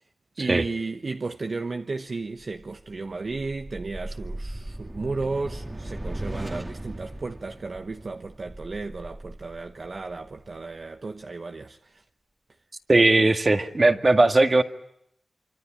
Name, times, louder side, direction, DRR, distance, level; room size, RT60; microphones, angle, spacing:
voice 1, 0.4-12.0, right 3 dB, 55° right, 1.1 m, -34 dB
sound 1, 2.4-10.8, right 1 dB, 20° right, 2.0 m, -38 dB
voice 2, 12.9-14.6, right 2 dB, 40° right, 2.0 m, -19 dB
26.0 x 25.0 x 8.9 m
cardioid pair, 55°, 0 cm